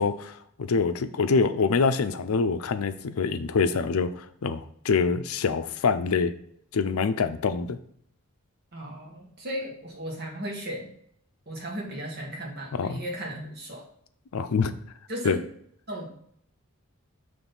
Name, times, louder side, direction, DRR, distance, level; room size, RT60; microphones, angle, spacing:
voice 1, 0.0-6.3 6.7-7.8 12.7-13.0 14.3-14.7 15.2-15.4, left 5 dB, 85° left, 11 dB, 0.5 m, -25 dB
voice 2, 8.7-10.9 11.4-13.8 15.1-15.4 15.9-16.1, equal, 50° right, -2 dB, 1.6 m, -36 dB
6.1 x 3.2 x 5.4 m, 0.67 s
head